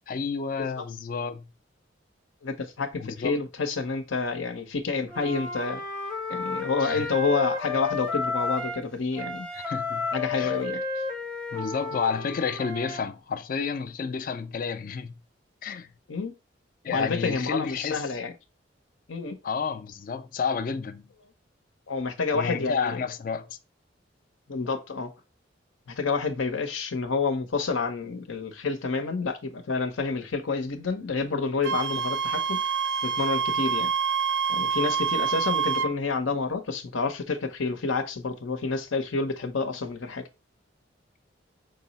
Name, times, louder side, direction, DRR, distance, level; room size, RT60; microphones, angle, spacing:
voice 1, 0.1-1.5 3.0-3.3 6.8-7.1 9.5-10.1 10.3-10.6 11.5-15.2 15.6-15.9 16.8-18.1 19.4-21.0 22.3-23.6, left 5 dB, 45° left, 0.3 m, -31 dB
voice 2, 2.4-5.8 6.3-9.5 10.1-10.8 16.1-16.3 16.9-18.3 19.1-19.4 21.9-23.0 24.5-25.1 25.9-32.6 33.0-33.9 34.5-40.3, left 4 dB, 85° left, 0.7 m, -29 dB
Wind instrument woodwind instrument, 5.1-8.9 9.2-13.0, left 3 dB, 5° left, 0.6 m, -32 dB
Wind instrument woodwind instrument 2, 31.6-35.9, right 6 dB, 65° right, 0.4 m, -26 dB
5.3 x 2.0 x 3.9 m
head